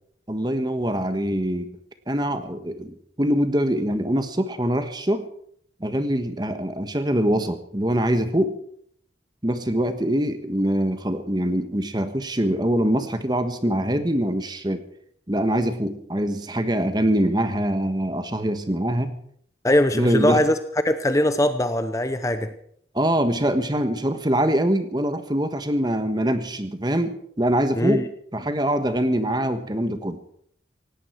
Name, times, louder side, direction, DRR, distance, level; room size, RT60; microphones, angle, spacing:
voice 1, 0.3-1.7 2.1-5.3 5.8-8.5 9.4-14.8 15.3-19.1 19.9-20.4 22.9-28.1 28.3-30.2, right 1 dB, 25° right, 9 dB, 1.4 m, -23 dB
voice 2, 19.6-20.6 20.8-22.5 27.7-28.1, left 1 dB, 20° left, 10 dB, 0.8 m, -21 dB
17.5 x 17.0 x 4.6 m, 0.64 s
head